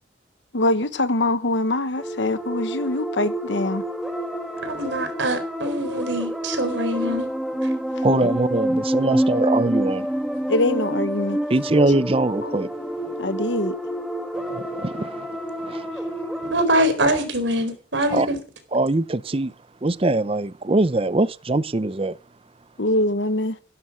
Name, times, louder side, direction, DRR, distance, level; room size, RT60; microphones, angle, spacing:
voice 1, 0.5-3.8 7.9-8.0 10.5-11.4 12.4-12.6 13.2-13.8 22.8-23.6, left 2 dB, 75° left, 1.1 m, -23 dB
sound 1, 2.0-16.5, right 1 dB, ahead, 1.8 m, -28 dB
voice 2, 4.6-7.3 16.5-18.4, right 1 dB, 85° right, 4.4 m, -23 dB
voice 3, 8.0-10.1 11.5-12.7 14.3-15.9 16.4-16.5 18.1-18.3 18.7-19.5 19.8-22.2, right 2 dB, 30° right, 0.6 m, -22 dB
16.5 x 12.0 x 6.2 m
head